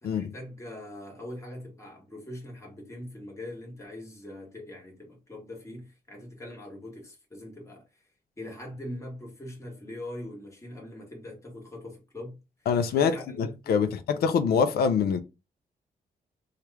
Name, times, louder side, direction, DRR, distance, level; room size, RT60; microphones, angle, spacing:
voice 1, 0.0-8.0 8.4-12.4 13.0-14.0, left 1 dB, 20° left, 1.3 m, -42 dB
voice 2, 12.7-15.2, left 6 dB, 90° left, 0.4 m, -25 dB
3.0 x 2.4 x 3.2 m
wide cardioid pair, 130°, 16 cm